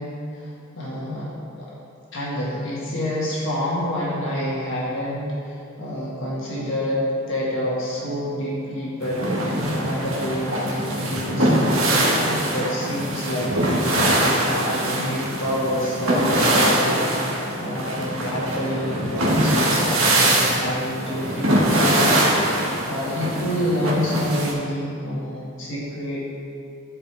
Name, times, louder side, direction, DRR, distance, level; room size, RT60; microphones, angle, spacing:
voice 1, 0.0-1.7 2.1-26.2, equal, 65° left, -6 dB, 1.7 m, -28 dB
sound 1, 9.0-24.5, right 1 dB, 80° right, 1.4 m, -22 dB
13.0 x 4.9 x 3.4 m, 2.4 s
head